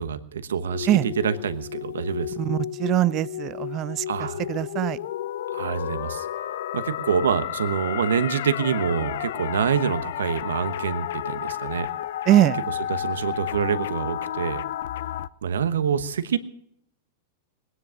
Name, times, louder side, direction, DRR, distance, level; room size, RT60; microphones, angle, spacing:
voice 1, 0.0-2.6 4.1-4.5 5.5-6.3 6.7-11.9 12.7-14.6 15.4-16.4, right 7 dB, 80° right, 11 dB, 1.1 m, -26 dB
sound 1, 0.7-15.3, left 12 dB, 70° left, 0.5 m, -32 dB
voice 2, 2.4-4.0 4.5-5.0 12.3-12.6, right 13 dB, 40° right, 19 dB, 0.5 m, -22 dB
20.0 x 10.0 x 6.4 m, 0.73 s
hypercardioid pair, 105°, 0 cm